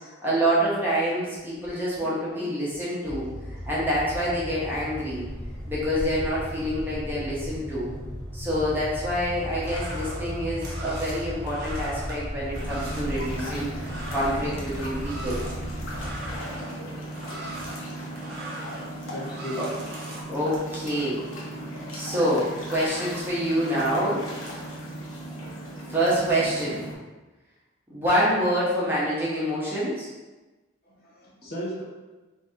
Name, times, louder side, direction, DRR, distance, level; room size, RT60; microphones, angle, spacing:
voice 1, 0.2-3.3 3.6-5.2 5.7-7.9 8.3-15.4 19.0-19.1 19.6-19.7 20.3-21.2 21.9-24.2 25.9-26.8 27.9-30.1, equal, 10° right, -8 dB, 0.9 m, -26 dB
voice 2, 1.9-2.5 3.5-3.6 19.1-19.6 30.8-31.8, equal, 45° left, -4 dB, 0.8 m, -37 dB
sound 1, 3.0-16.4, equal, 20° left, 0.9 m, -35 dB
sound 2, 9.3-20.2, right 1 dB, 50° right, 0.8 m, -40 dB
sound 3, 12.5-26.9, right 1 dB, 75° left, 0.9 m, -37 dB
3.9 x 2.6 x 3.7 m, 1.2 s
head